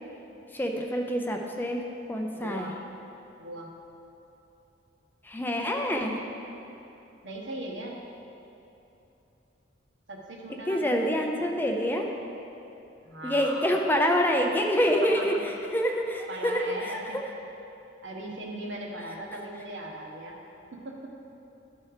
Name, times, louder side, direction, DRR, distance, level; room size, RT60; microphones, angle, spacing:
voice 1, 0.5-1.8 2.1-2.7 5.2-6.2 10.7-12.1 13.2-17.0, equal, 10° left, 1 dB, 0.5 m, -26 dB
voice 2, 2.3-2.7 3.4-3.7 7.2-8.0 10.1-11.5 13.0-13.8 15.0-15.3 16.3-17.2 18.0-20.4 20.8-21.1, right 1 dB, 70° right, -1 dB, 1.2 m, -39 dB
11.5 x 4.3 x 4.9 m, 2.9 s
head